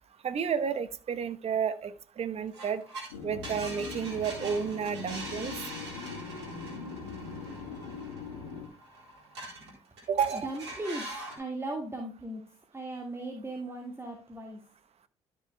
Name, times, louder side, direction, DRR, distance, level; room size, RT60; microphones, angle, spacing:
voice 1, 0.2-2.8 3.2-5.6 10.1-10.5, right 7 dB, 50° right, 12 dB, 1.0 m, -31 dB
sound 1, 2.5-3.1 3.4-9.7 10.0-11.4, right 2 dB, 90° right, 3.3 m, -43 dB
sound 2, 3.1-8.7, left 5 dB, 85° left, 1.7 m, -41 dB
voice 2, 10.3-12.4 12.7-14.6, right 2 dB, 20° right, 2 dB, 1.9 m, -38 dB
12.5 x 6.6 x 2.2 m, 0.36 s
hypercardioid pair, 50°, 14 cm